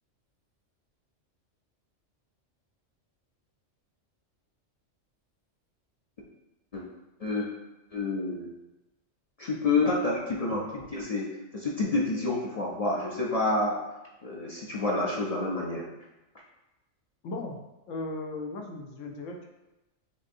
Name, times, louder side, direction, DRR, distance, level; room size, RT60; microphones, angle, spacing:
voice 1, 7.9-8.5 9.4-11.3 11.5-13.8 14.2-15.8, left 2 dB, 45° left, -4 dB, 0.5 m, -28 dB
voice 2, 17.2-17.6 17.9-19.5, left 2 dB, 75° left, 2 dB, 1.0 m, -36 dB
6.6 x 2.8 x 2.6 m, 1.0 s
omnidirectional pair, 1.3 m